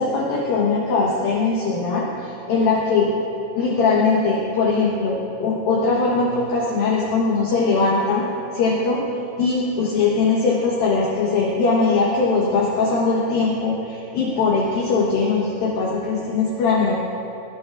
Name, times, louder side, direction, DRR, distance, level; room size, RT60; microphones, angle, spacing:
voice 1, 0.0-3.1 3.5-8.2 8.5-9.0 9.4-17.0, left 4 dB, 65° left, -4 dB, 2.6 m, -20 dB
21.5 x 16.0 x 2.5 m, 2.8 s
omnidirectional pair, 5.2 m